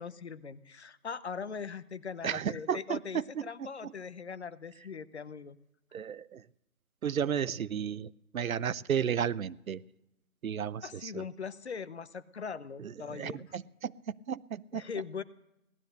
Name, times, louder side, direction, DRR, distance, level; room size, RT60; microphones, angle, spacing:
voice 1, 0.0-5.6 10.8-13.6 14.7-15.2, left 6 dB, 50° left, 15 dB, 0.7 m, -41 dB
voice 2, 2.2-3.9 5.9-6.4 7.0-9.8 10.4-11.2 12.8-14.8, right 8 dB, 70° right, 19 dB, 0.7 m, -34 dB
18.0 x 12.5 x 6.5 m, 0.87 s
hypercardioid pair, 175°, 44 cm